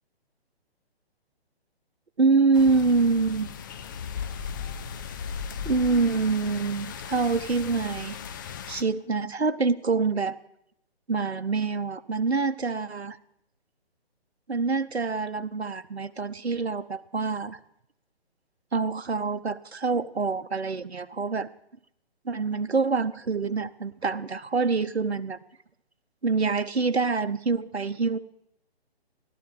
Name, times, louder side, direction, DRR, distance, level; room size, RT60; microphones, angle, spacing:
voice 1, 2.2-3.5 5.6-8.2 8.7-10.4 11.1-13.2 14.5-17.6 18.7-21.5 22.2-25.4 26.2-28.2, right 4 dB, 85° right, 11 dB, 1.0 m, -26 dB
sound 1, 2.5-8.8, left 8 dB, 20° left, 0.6 m, -40 dB
Bird, 3.9-6.4, left 6 dB, 50° left, 6.8 m, -36 dB
15.5 x 12.5 x 7.2 m, 0.77 s
figure-of-eight pair, 140°, 31 cm